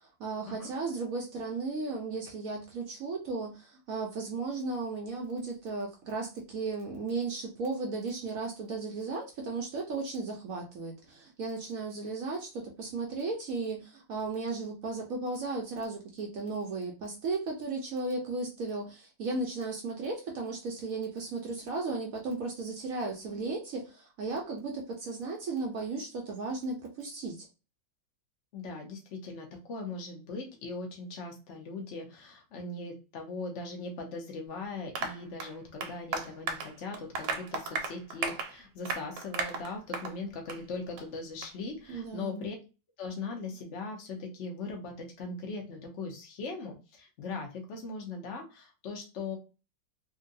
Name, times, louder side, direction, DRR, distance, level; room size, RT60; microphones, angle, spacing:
voice 1, 0.0-27.5 41.9-42.5, right 3 dB, 65° right, 0 dB, 0.9 m, -35 dB
voice 2, 28.5-42.5 43.0-49.4, left 3 dB, 50° left, 1 dB, 1.0 m, -40 dB
Applause, 35.0-40.2 40.5-40.6 41.0-41.1 41.4-41.5, right 5 dB, 85° right, 1.4 m, -35 dB
3.7 x 2.2 x 2.6 m, 0.31 s
omnidirectional pair, 1.9 m